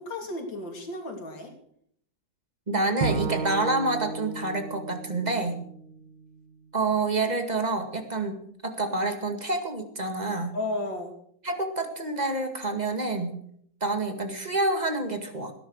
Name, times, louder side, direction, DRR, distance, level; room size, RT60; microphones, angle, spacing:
voice 1, 0.0-1.5 10.5-11.1, left 2 dB, 80° left, 2 dB, 3.7 m, -33 dB
voice 2, 2.7-5.6 6.7-8.4 8.6-10.6 11.4-13.4 13.8-15.5, right 2 dB, 20° right, 6 dB, 2.0 m, -28 dB
Bowed string instrument, 3.0-6.3, right 4 dB, 65° right, 2.0 m, -33 dB
18.5 x 10.0 x 6.4 m, 0.67 s
omnidirectional pair, 2.0 m